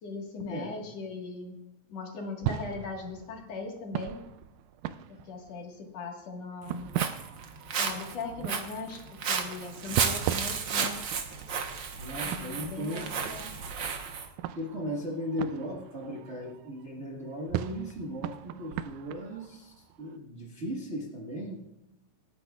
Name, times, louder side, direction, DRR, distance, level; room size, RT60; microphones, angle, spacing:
voice 1, 0.0-1.6 1.9-4.2 5.1-6.9 7.8-11.0 12.2-13.5, left 4 dB, 60° left, 1 dB, 2.7 m, -39 dB
sound 1, 2.4-5.6 6.4-16.9 17.3-20.2, right 12 dB, 90° right, 2.1 m, -38 dB
Walk footsteps, 6.6-14.3, right 6 dB, 70° right, 1.1 m, -33 dB
voice 2, 12.0-13.3 14.5-21.6, equal, 35° right, -2 dB, 1.2 m, -37 dB
27.0 x 9.9 x 2.4 m, 0.88 s
omnidirectional pair, 3.5 m